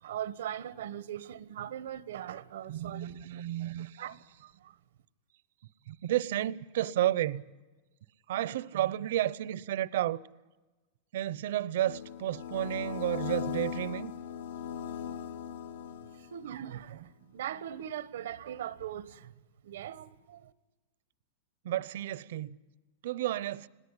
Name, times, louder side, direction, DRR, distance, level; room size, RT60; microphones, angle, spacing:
voice 1, 0.0-3.1 4.0-4.8 16.1-19.3 19.6-20.5, right 10 dB, 90° right, 1.1 m, -40 dB
voice 2, 2.7-4.0 5.9-7.4 8.3-10.2 11.1-14.1 21.6-22.6 23.0-23.7, right 13 dB, 65° right, 0.7 m, -32 dB
sound 1, 11.9-16.5, left 8 dB, 90° left, 1.1 m, -38 dB
20.5 x 18.0 x 9.8 m
supercardioid pair, 175°, 0 cm